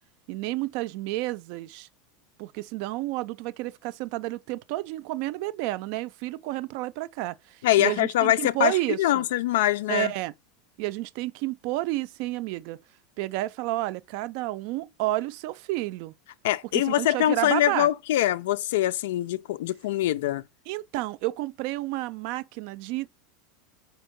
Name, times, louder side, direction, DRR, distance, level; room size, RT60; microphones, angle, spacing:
voice 1, 0.3-1.9 2.4-9.3 9.9-10.3 10.8-12.8 13.2-16.1 16.7-17.9 20.7-23.1, right 17 dB, 45° right, 0.4 m, -30 dB
voice 2, 7.6-10.1 16.4-20.4, left 14 dB, 75° left, 0.4 m, -24 dB
4.5 x 4.3 x 5.2 m
supercardioid pair, 175°, 0 cm